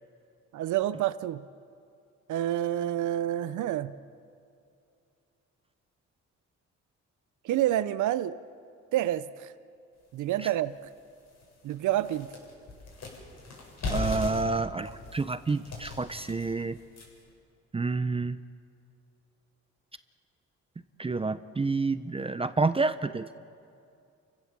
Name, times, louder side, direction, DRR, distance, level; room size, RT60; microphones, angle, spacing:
voice 1, 0.5-1.4 2.3-4.0 7.4-8.4 8.9-9.5 10.1-10.8 11.6-12.3, right 12 dB, 80° right, 14 dB, 0.7 m, -28 dB
sound 1, 10.2-10.3 10.8-10.9 11.3-17.3, left 2 dB, 65° left, 7.9 m, -38 dB
voice 2, 13.9-16.8 17.7-18.4 21.0-23.3, right 3 dB, 20° right, 12 dB, 0.7 m, -29 dB
29.5 x 16.0 x 7.4 m, 2.5 s
cardioid pair, 90°, 30 cm